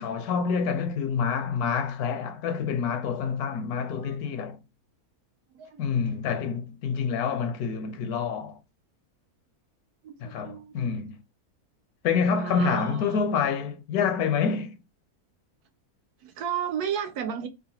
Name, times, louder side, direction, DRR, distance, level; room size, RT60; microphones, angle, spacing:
voice 1, 0.0-4.6 5.8-8.6 10.2-11.2 12.0-14.8, left 6 dB, 75° left, 1.1 m, -27 dB
voice 2, 5.5-5.9 10.0-10.9 12.3-13.2 16.2-17.5, right 8 dB, 80° right, 1.3 m, -33 dB
3.8 x 2.1 x 2.7 m
omnidirectional pair, 1.6 m